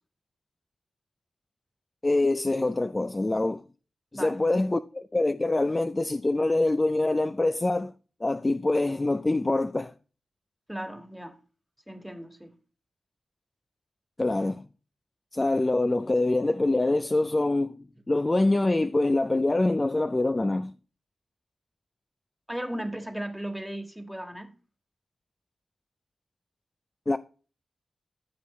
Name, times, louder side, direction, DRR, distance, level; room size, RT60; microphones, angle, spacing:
voice 1, 2.0-3.6 4.1-7.9 8.2-9.9 14.2-14.6 15.3-20.7 27.1-27.2, left 2 dB, 25° left, 0.4 m, -25 dB
voice 2, 10.7-11.3 11.9-12.5 22.5-24.5, right 1 dB, 5° right, 1.6 m, -36 dB
13.5 x 6.1 x 3.1 m
cardioid pair, 65°, 0 cm